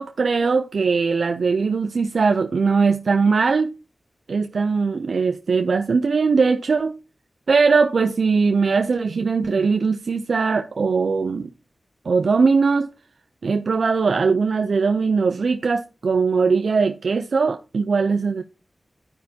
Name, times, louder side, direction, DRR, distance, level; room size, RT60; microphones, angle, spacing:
voice 1, 0.0-3.7 4.3-7.0 7.5-11.5 12.1-12.9 13.4-18.4, right 4 dB, 80° right, 0.4 m, -20 dB
13.5 x 5.1 x 2.7 m
cardioid pair, 50°, 0 cm